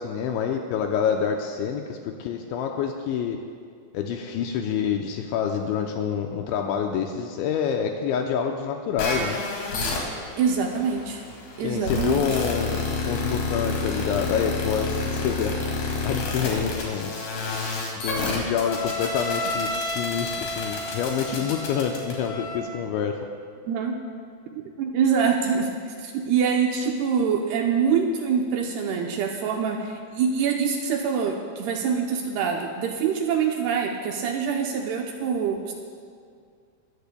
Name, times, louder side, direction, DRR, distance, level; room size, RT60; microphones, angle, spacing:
voice 1, 0.0-3.4 3.9-9.4 11.6-15.6 16.0-17.1 18.0-23.2, left 7 dB, 85° left, 3 dB, 2.9 m, -27 dB
sound 1, 9.0-22.6, left 3 dB, 60° left, 4.0 m, -29 dB
voice 2, 10.4-11.2 11.6-12.3 23.7-24.0 24.8-25.7 26.0-35.7, right 6 dB, 80° right, 2 dB, 2.4 m, -25 dB
22.0 x 15.0 x 2.2 m, 2.2 s
omnidirectional pair, 5.5 m